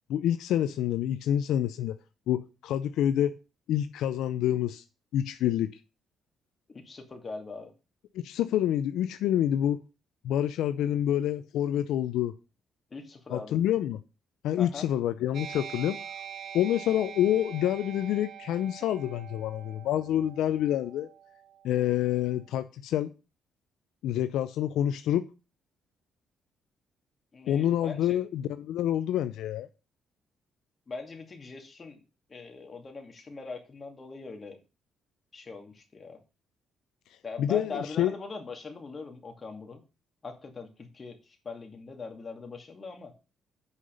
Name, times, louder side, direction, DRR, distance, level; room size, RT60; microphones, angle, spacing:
voice 1, 0.1-2.0 2.3-3.3 3.7-4.8 5.1-5.7 8.1-9.8 10.2-12.3 13.3-14.0 14.4-16.0 16.5-21.1 21.6-23.1 24.0-25.2 27.5-29.7 37.4-38.1, left 11 dB, 85° left, 0.6 m, -27 dB
voice 2, 6.7-7.7 12.9-13.6 14.6-14.9 27.3-28.2 30.9-32.0 32.3-34.6 35.3-36.2 37.2-39.8 40.2-43.1, left 4 dB, 35° left, 2.5 m, -41 dB
sound 1, 15.3-22.4, right 8 dB, 70° right, 1.1 m, -44 dB
8.2 x 5.7 x 6.8 m
cardioid pair, 90°, 0 cm